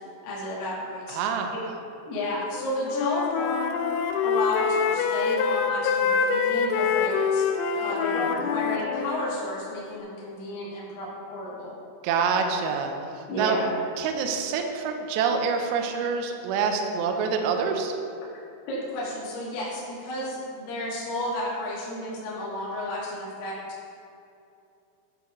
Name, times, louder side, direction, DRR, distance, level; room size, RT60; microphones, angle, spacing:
voice 1, 0.2-1.2 1.5-1.6 2.0-3.7 4.2-7.4 7.7-11.7 13.3-13.7 18.7-23.5, left 1 dB, 65° left, -7 dB, 3.1 m, -32 dB
voice 2, 1.1-1.6 12.0-13.6 14.0-17.9, right 5 dB, 90° right, 4 dB, 2.4 m, -26 dB
Wind instrument woodwind instrument, 2.5-9.3, left 6 dB, 85° left, 2.7 m, -25 dB
11.0 x 7.2 x 3.1 m, 2.7 s
omnidirectional pair, 5.9 m